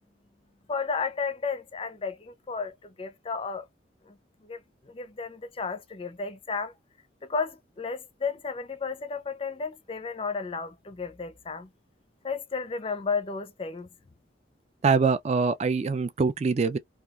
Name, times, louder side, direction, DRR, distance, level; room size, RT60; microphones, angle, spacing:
voice 1, 0.7-3.7 4.1-4.2 4.4-4.6 4.9-6.7 7.3-11.7 12.2-13.9, left 5 dB, 30° left, 0.4 m, -33 dB
voice 2, 14.8-16.8, right 4 dB, 35° right, 0.3 m, -24 dB
2.8 x 2.3 x 2.3 m
head